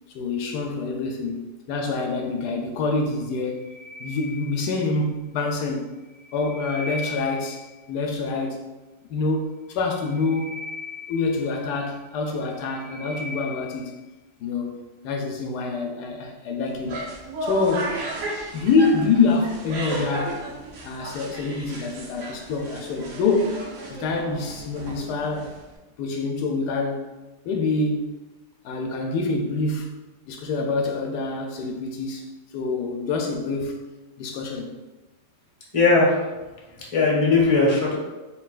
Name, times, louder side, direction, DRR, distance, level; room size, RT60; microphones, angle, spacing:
voice 1, 0.1-3.7 4.0-5.9 6.3-7.6 7.9-8.6 9.1-10.6 11.1-14.0 14.4-17.1 17.4-17.9 18.5-20.5 20.8-23.6 23.9-25.5 26.0-27.1 27.4-28.2 28.6-30.0 30.3-32.3 32.5-33.8 34.2-34.7, left 3 dB, 80° left, 2 dB, 1.1 m, -26 dB
sound 1, 3.5-5.0 6.0-7.8 9.8-11.9 12.4-13.9, left 3 dB, 45° left, 1.2 m, -39 dB
sound 2, 16.7-25.8, right 2 dB, 60° right, 0.8 m, -34 dB
voice 2, 35.7-36.2 36.9-38.0, left 3 dB, 25° left, -4 dB, 1.0 m, -18 dB
4.5 x 3.7 x 2.4 m, 1.1 s
omnidirectional pair, 1.8 m